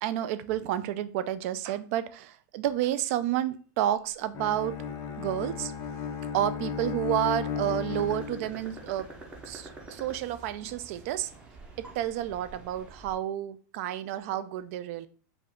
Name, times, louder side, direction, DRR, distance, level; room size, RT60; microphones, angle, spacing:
voice 1, 0.0-4.7 5.2-5.7 6.3-9.1 9.5-11.3 11.8-15.1, right 12 dB, 45° right, 13 dB, 0.4 m, -30 dB
Bowed string instrument, 4.3-8.8, left 7 dB, 25° left, 0.4 m, -35 dB
sound 1, 7.9-13.1, right 2 dB, 10° right, 0.6 m, -47 dB
4.7 x 2.5 x 3.5 m, 0.40 s
supercardioid pair, 160°, 10 cm